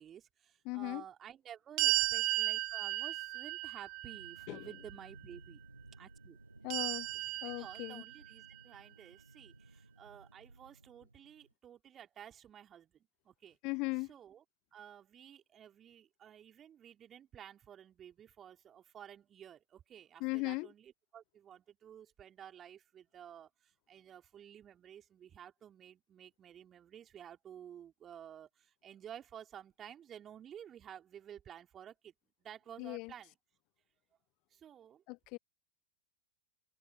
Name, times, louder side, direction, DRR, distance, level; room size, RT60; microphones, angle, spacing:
voice 1, 0.0-5.6 6.0-6.4 7.6-13.6 14.1-14.4 14.7-32.1 32.4-33.3 34.5-35.0, right 9 dB, 25° right, 3.7 m, -53 dB
voice 2, 0.7-1.0 4.5-4.7 6.6-7.1 7.4-8.0 13.6-14.1 20.2-20.7 32.8-33.1 35.1-35.4, left 27 dB, 40° left, 0.3 m, -38 dB
sound 1, 1.8-4.9 6.7-8.5, right 25 dB, 40° right, 0.4 m, -35 dB
sound 2, 4.0-11.5, right 2 dB, 85° right, 1.0 m, -58 dB
figure-of-eight pair, 90°, 0 cm